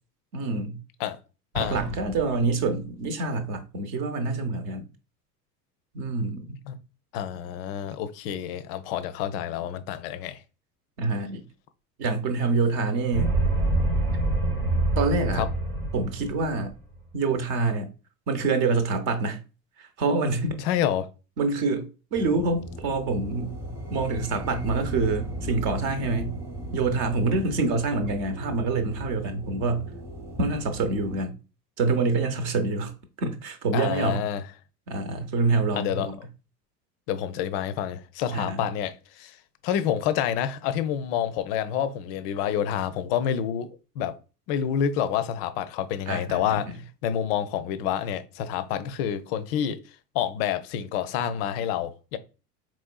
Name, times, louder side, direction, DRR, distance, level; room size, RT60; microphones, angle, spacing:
voice 1, 0.3-0.8 1.6-4.9 5.9-6.6 11.0-11.4 12.0-13.4 15.0-15.4 15.9-16.7 17.1-17.9 18.3-19.4 19.8-20.6 21.4-23.6 23.9-26.4 26.7-29.9 30.4-31.3 31.8-34.2 34.9-36.2 38.3-38.7 46.1-46.6, right 3 dB, 45° right, 0.8 m, -26 dB
Explosion, 1.5-3.2, left 1 dB, 70° right, 0.8 m, -36 dB
voice 2, 7.1-10.4 15.4-15.5 20.6-21.1 33.7-34.4 35.7-36.1 37.1-39.4 39.6-43.7 44.0-44.2 44.5-46.8 47.0-49.8 50.1-52.2, left 9 dB, 40° left, 0.4 m, -28 dB
sound 1, 13.1-16.7, right 2 dB, 90° right, 1.2 m, -25 dB
sound 2, 22.1-31.2, equal, 5° right, 0.7 m, -37 dB
4.4 x 3.0 x 2.2 m
figure-of-eight pair, 75°, 47 cm